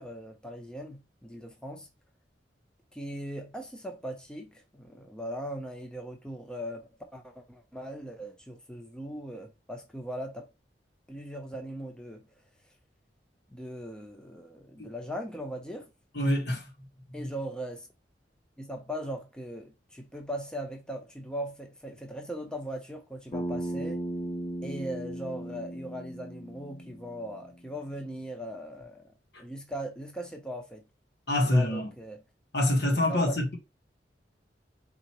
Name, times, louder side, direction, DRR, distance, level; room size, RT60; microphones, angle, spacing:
voice 1, 0.0-1.9 2.9-10.5 11.1-12.2 13.5-15.9 17.1-17.9 18.6-24.0 24.6-29.1 29.4-30.8 31.4-32.2 33.1-33.4, equal, 5° left, 0.8 m, -39 dB
voice 2, 16.1-16.7 17.1-17.3 31.3-31.9 32.5-33.5, left 1 dB, 70° left, 1.5 m, -26 dB
Bass guitar, 23.3-27.6, right 1 dB, 35° left, 1.0 m, -36 dB
4.3 x 3.9 x 3.0 m
head